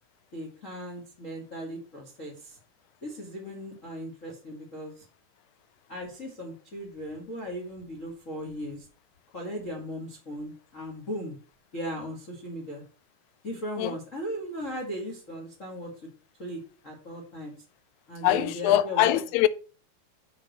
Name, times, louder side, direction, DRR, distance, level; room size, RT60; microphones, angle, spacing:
voice 1, 0.3-2.6 3.0-5.0 5.9-8.9 9.3-11.4 11.7-12.8 13.4-16.1 16.4-17.5 18.1-19.2, equal, 30° left, 1.4 m, -37 dB
voice 2, 18.2-19.5, left 13 dB, 85° left, 2.5 m, -23 dB
6.7 x 5.8 x 6.6 m
omnidirectional pair, 4.7 m